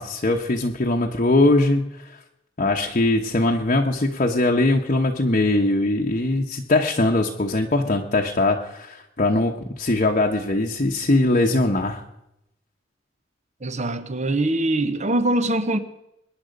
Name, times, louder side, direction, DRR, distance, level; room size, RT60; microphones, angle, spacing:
voice 1, 0.0-2.2 2.6-12.0, left 2 dB, 40° left, 0 dB, 1.0 m, -21 dB
voice 2, 13.6-15.8, right 1 dB, 40° right, 11 dB, 1.0 m, -23 dB
21.5 x 9.8 x 5.2 m, 0.85 s
head